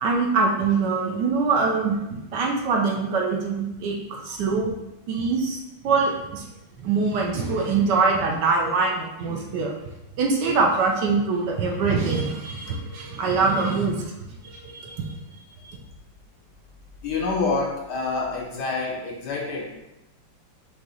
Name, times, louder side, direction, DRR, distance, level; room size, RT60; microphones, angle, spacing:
voice 1, 0.0-4.7 5.1-6.4 6.8-9.7 10.2-14.0 14.4-15.2 15.6-15.8, right 4 dB, 70° right, 0 dB, 1.2 m, -24 dB
voice 2, 17.0-19.8, left 3 dB, 70° left, 0 dB, 1.0 m, -27 dB
4.8 x 2.8 x 3.9 m, 0.95 s
omnidirectional pair, 2.1 m